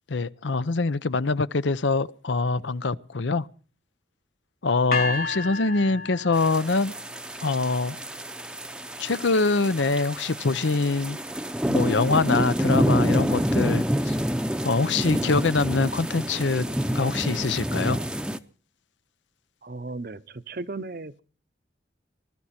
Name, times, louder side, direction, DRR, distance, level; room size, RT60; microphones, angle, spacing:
voice 1, 0.1-3.5 4.6-6.9 7.4-8.0 9.0-11.2 11.7-14.2 14.6-16.7 16.9-18.0, left 3 dB, 85° left, 0.7 m, -24 dB
sound 1, 4.9-7.0, left 4 dB, 50° left, 2.6 m, -31 dB
sound 2, 6.3-18.4, equal, 5° right, 0.7 m, -28 dB
voice 2, 19.6-21.2, right 3 dB, 50° right, 0.8 m, -36 dB
20.0 x 13.0 x 4.3 m
head